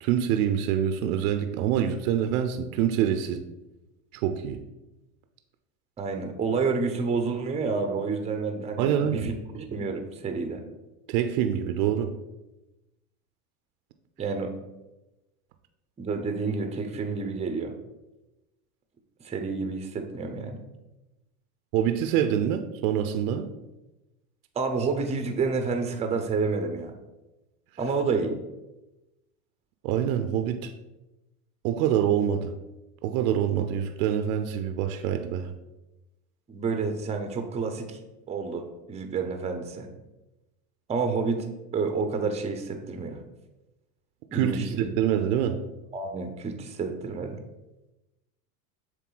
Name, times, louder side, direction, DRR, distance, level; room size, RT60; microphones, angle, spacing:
voice 1, 0.0-3.4 4.1-4.6 8.8-9.3 11.1-12.1 21.7-23.5 29.8-30.7 31.6-32.5 33.0-35.5 44.3-45.6, right 9 dB, 65° right, 8 dB, 0.6 m, -25 dB
voice 2, 6.0-10.6 14.2-14.5 16.0-17.7 19.2-20.6 24.6-27.0 27.8-28.4 36.5-38.0 38.3-39.9 40.9-41.5 41.7-43.2 44.3-44.9 45.2-45.3 45.9-47.4, right 4 dB, 15° right, 6 dB, 0.6 m, -29 dB
7.5 x 3.3 x 3.9 m, 1.0 s
supercardioid pair, 110°, 46 cm